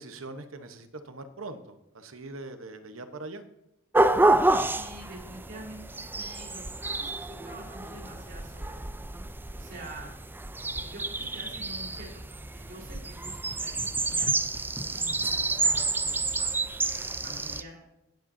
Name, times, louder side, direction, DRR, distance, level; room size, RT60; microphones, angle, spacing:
voice 1, 0.0-3.4, right 2 dB, 80° right, 9 dB, 1.1 m, -42 dB
sound 1, 3.9-17.6, right 2 dB, 10° right, 0.4 m, -29 dB
voice 2, 4.7-8.8 9.5-10.1 10.6-14.3 14.7-16.7 17.2-17.8, right 1 dB, 55° right, -3 dB, 4.4 m, -47 dB
18.5 x 7.6 x 2.7 m, 0.86 s
head